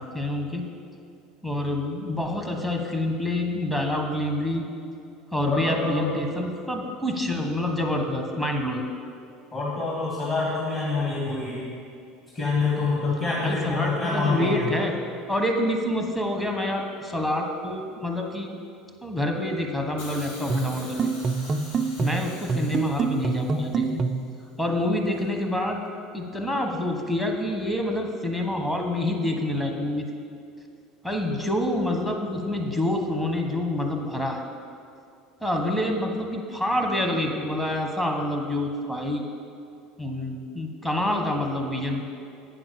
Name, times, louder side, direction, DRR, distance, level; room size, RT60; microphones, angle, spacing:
voice 1, 0.1-0.6 1.4-4.6 5.3-8.8 13.4-14.9 15.3-18.5 19.0-21.1 22.0-24.0 24.6-25.8 26.1-30.1 31.0-34.4 35.4-39.2 40.0-42.0, left 1 dB, 10° left, 2 dB, 1.3 m, -27 dB
voice 2, 5.4-6.1 9.5-11.7 12.3-14.7 22.5-22.7, left 3 dB, 25° left, -5 dB, 2.1 m, -26 dB
Hiss, 20.0-24.1 25.1-25.2, left 2 dB, 85° left, 1.9 m, -45 dB
sound 1, 20.5-24.3, right 5 dB, 35° right, 0.4 m, -26 dB
8.5 x 6.0 x 6.9 m, 2.5 s
supercardioid pair, 105°, 0 cm